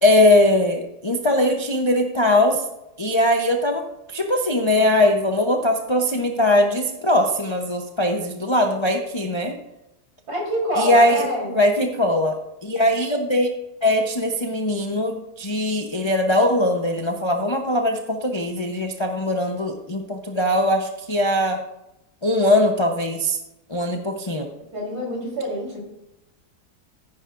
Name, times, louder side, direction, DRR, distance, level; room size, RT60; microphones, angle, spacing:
voice 1, 0.0-2.6 3.0-9.5 10.8-13.5 13.8-21.6 22.2-23.4 23.7-24.5, left 1 dB, 30° left, 2 dB, 0.5 m, -20 dB
voice 2, 10.3-11.6 24.7-25.8, equal, 60° right, -3 dB, 4.4 m, -26 dB
14.0 x 10.0 x 2.5 m, 0.90 s
omnidirectional pair, 1.8 m